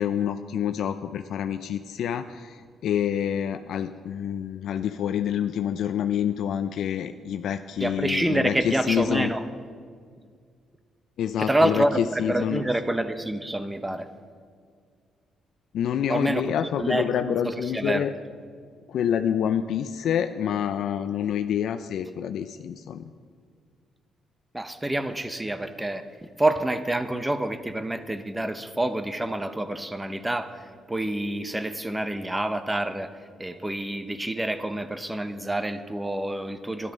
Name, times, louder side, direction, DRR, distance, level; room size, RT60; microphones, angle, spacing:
voice 1, 0.0-9.3 11.2-12.6 15.7-18.1 18.9-23.0, left 9 dB, 75° left, 9 dB, 0.4 m, -27 dB
voice 2, 7.8-9.4 11.4-14.1 16.1-18.1 24.5-26.0 26.4-30.5 30.9-33.1 33.4-36.9, right 1 dB, 10° right, 10 dB, 0.9 m, -27 dB
13.0 x 11.0 x 5.3 m, 2.1 s
cardioid pair, 90°, 0 cm